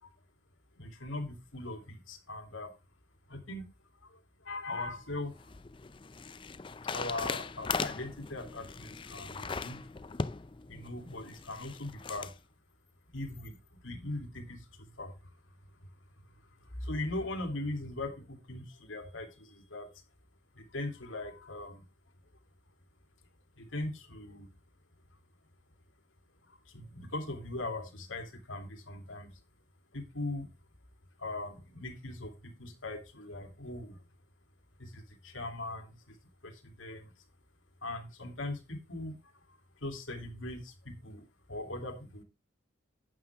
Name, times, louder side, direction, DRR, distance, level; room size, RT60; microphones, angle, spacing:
voice 1, 0.8-2.7 3.3-3.6 4.5-5.3 6.9-9.8 10.7-12.3 13.1-13.5 13.8-14.6 15.0-15.1 16.8-19.9 20.6-21.8 23.6-24.5 26.7-29.3 29.9-30.5 31.2-34.0 34.8-35.9 36.4-37.0 37.8-39.1 39.8-42.2, left 2 dB, 90° left, 4 dB, 2.8 m, -40 dB
sound 1, 5.0-12.3, left 4 dB, 25° left, 0.5 m, -39 dB
11.5 x 8.5 x 3.5 m, 0.27 s
head